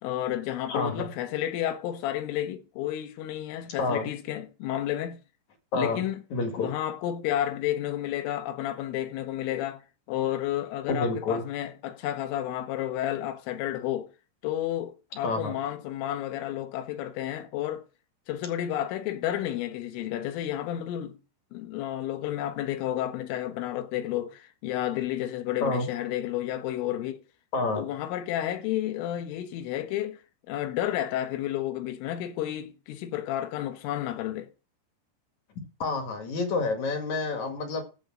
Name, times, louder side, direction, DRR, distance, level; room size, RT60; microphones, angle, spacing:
voice 1, 0.0-5.2 5.7-6.2 6.6-14.1 14.4-17.8 18.3-21.2 21.5-27.2 27.8-30.2 30.5-34.5, left 12 dB, 85° left, 3.7 m, -31 dB
voice 2, 0.7-1.1 3.8-4.1 5.7-6.0 6.3-6.7 10.9-11.4 15.2-15.5 25.6-25.9 27.5-27.8 35.8-37.8, left 3 dB, 50° left, 2.6 m, -28 dB
15.0 x 5.3 x 6.0 m
omnidirectional pair, 5.6 m